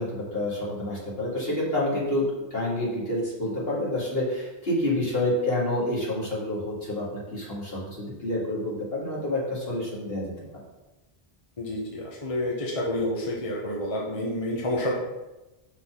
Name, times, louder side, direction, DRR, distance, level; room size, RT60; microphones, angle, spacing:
voice 1, 0.0-2.3 2.5-10.3, left 1 dB, 70° left, -6 dB, 2.5 m, -28 dB
voice 2, 11.6-14.9, left 1 dB, 35° left, -2 dB, 1.0 m, -29 dB
5.9 x 4.0 x 6.0 m, 1.0 s
omnidirectional pair, 1.0 m